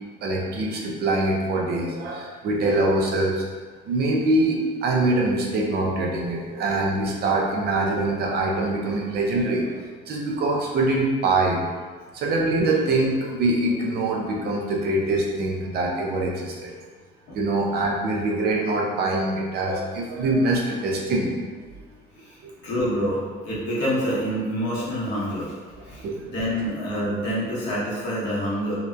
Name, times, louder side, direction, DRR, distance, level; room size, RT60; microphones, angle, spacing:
voice 1, 0.2-3.4 3.9-9.7 10.1-11.6 12.1-16.7 17.3-21.3 26.0-26.3, right 2 dB, 60° right, -1 dB, 0.5 m, -24 dB
voice 2, 22.6-25.5 25.8-28.8, equal, 75° left, -7 dB, 0.9 m, -27 dB
2.7 x 2.2 x 2.2 m, 1.5 s
cardioid pair, 115°, 19 cm